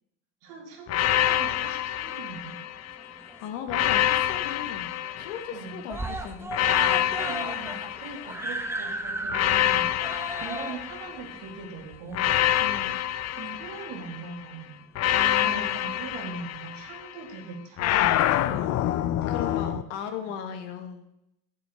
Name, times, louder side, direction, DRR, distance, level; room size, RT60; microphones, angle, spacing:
voice 1, 0.4-2.6 5.5-5.8 7.2-12.4 13.3-14.9 15.4-19.9 20.2-20.3, right 5 dB, 85° right, 1 dB, 2.3 m, -41 dB
sound 1, 0.9-3.0 3.7-5.8 6.5-8.7 9.3-11.5 12.1-14.3 15.0-17.1 17.8-19.8, left 12 dB, 45° left, 0.5 m, -26 dB
voice 2, 3.0-7.1 12.6-13.0 15.1-15.8 19.3-21.1, left 7 dB, 80° left, 6 dB, 1.5 m, -38 dB
Screaming, 3.0-3.9 4.3-4.4 4.7-4.8 5.1-5.6 5.9-12.7 13.5-13.6, right 2 dB, 5° right, 0.7 m, -36 dB
10.5 x 8.5 x 3.5 m, 0.83 s
supercardioid pair, 95°, 36 cm